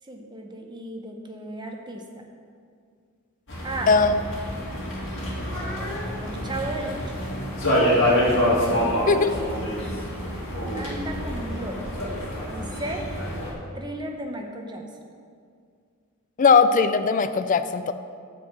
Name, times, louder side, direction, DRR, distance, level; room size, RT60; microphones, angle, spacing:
voice 1, 0.1-2.2 3.6-3.9 6.2-7.1 8.5-8.8 10.7-11.8 12.5-13.1 13.7-14.8, right 1 dB, 20° right, 3 dB, 0.7 m, -34 dB
sound 1, 3.5-13.5, equal, 55° left, 2.4 m, -26 dB
voice 2, 3.9-4.2 9.1-9.3 16.4-17.9, left 5 dB, 35° left, 10 dB, 0.4 m, -19 dB
8.8 x 4.7 x 7.3 m, 2.2 s
head